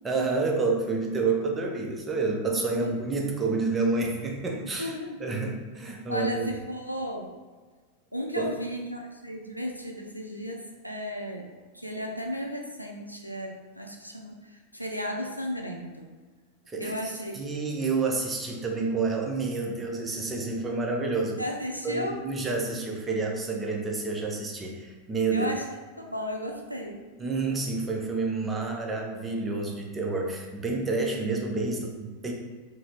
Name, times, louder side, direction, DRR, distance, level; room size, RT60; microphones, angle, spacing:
voice 1, 0.0-4.9 5.2-6.5 8.4-8.5 16.7-17.0 17.3-21.4 21.8-25.5 27.2-32.3, right 3 dB, 15° right, 0 dB, 0.5 m, -29 dB
voice 2, 2.5-2.9 4.8-5.3 6.1-7.3 8.1-11.5 11.7-16.1 16.8-17.4 21.4-22.2 25.3-25.6 26.0-27.0, equal, 90° left, 1 dB, 0.4 m, -34 dB
3.8 x 2.0 x 2.9 m, 1.4 s
figure-of-eight pair, 90°, 0 cm